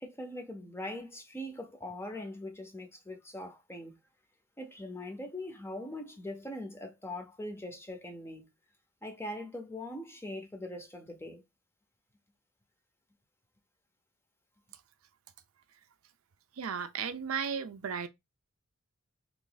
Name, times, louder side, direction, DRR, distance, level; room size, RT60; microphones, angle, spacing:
voice 1, 0.0-4.0 4.6-8.5 9.0-11.4, left 1 dB, 10° left, 0.7 m, -41 dB
voice 2, 16.6-18.1, right 6 dB, 70° right, 0.5 m, -35 dB
3.0 x 2.5 x 3.8 m
head